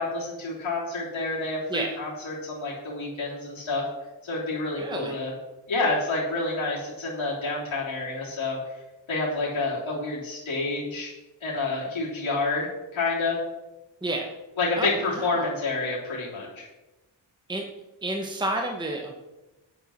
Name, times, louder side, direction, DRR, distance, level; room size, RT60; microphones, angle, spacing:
voice 1, 0.0-3.8 4.2-5.3 5.7-8.6 9.1-11.1 11.4-13.4 14.6-16.7, left 3 dB, 80° left, -6 dB, 3.4 m, -28 dB
voice 2, 4.7-5.2 14.0-14.3 14.8-15.5 17.5-17.7 18.0-19.2, right 1 dB, 10° right, 2 dB, 1.0 m, -30 dB
8.9 x 8.3 x 6.4 m, 1.1 s
wide cardioid pair, 155°, 46 cm